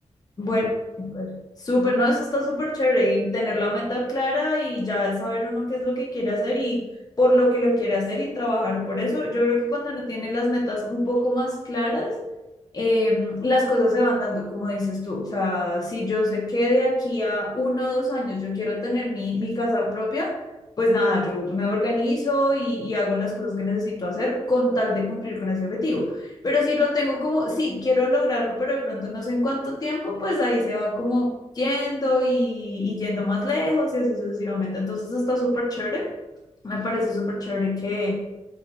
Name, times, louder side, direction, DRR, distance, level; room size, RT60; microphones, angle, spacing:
voice 1, 1.0-6.8 7.2-12.2 12.7-20.3 20.8-36.1 36.6-38.1, left 1 dB, 35° left, -3 dB, 0.6 m, -24 dB
2.9 x 2.4 x 3.9 m, 1.0 s
wide cardioid pair, 95°, 12 cm